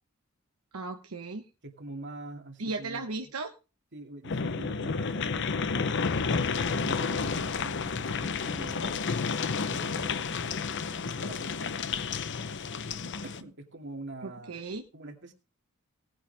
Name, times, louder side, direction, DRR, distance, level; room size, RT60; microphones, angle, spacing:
voice 1, 0.7-1.4 2.6-3.5 14.2-14.8, right 3 dB, 80° right, 4 dB, 1.1 m, -36 dB
voice 2, 1.6-3.1 3.9-6.0 6.3-12.1 13.2-14.6 14.9-15.3, right 2 dB, 55° right, 4 dB, 2.3 m, -45 dB
sound 1, 4.2-13.4, left 5 dB, 55° left, 0.7 m, -31 dB
18.0 x 9.1 x 3.4 m, 0.31 s
head